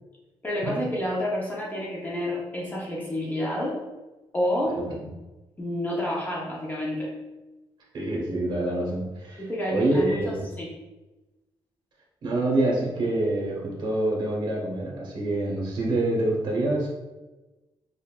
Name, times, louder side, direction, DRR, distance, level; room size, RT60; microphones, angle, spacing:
voice 1, 0.4-3.8 4.3-4.8 5.6-7.1 9.4-10.7, left 1 dB, 15° left, -4 dB, 0.7 m, -29 dB
voice 2, 7.9-9.4 9.7-10.3 12.2-16.9, right 1 dB, 50° right, -3 dB, 1.1 m, -26 dB
5.4 x 2.5 x 2.2 m, 1.1 s
wide cardioid pair, 180°, 10 cm